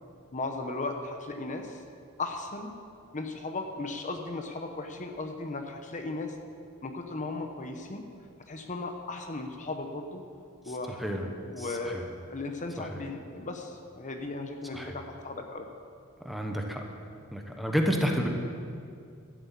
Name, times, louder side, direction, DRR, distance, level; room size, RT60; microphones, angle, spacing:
voice 1, 0.3-1.8 2.2-2.7 3.1-6.4 6.8-8.0 8.5-10.2 10.7-15.7, left 3 dB, 35° left, 4 dB, 0.9 m, -36 dB
voice 2, 11.6-12.0 12.8-13.0 14.7-15.0 16.2-16.8 17.3-18.3, equal, ahead, 2 dB, 1.1 m, -30 dB
13.0 x 7.7 x 8.4 m, 2.4 s
head